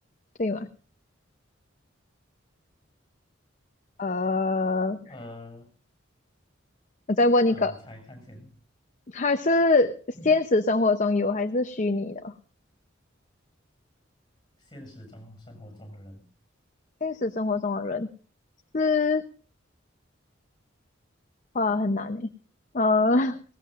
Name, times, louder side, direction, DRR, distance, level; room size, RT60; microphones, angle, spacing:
voice 1, 4.0-5.0 7.1-7.7 9.1-9.9 10.2-12.3 17.0-18.1 18.7-19.2 21.5-22.3 22.7-23.4, left 3 dB, 40° left, 8 dB, 0.7 m, -23 dB
voice 2, 5.1-5.7 7.5-8.5 10.1-10.4 14.6-16.3, left 1 dB, 20° left, 4 dB, 7.0 m, -45 dB
19.5 x 17.5 x 2.5 m, 0.39 s
head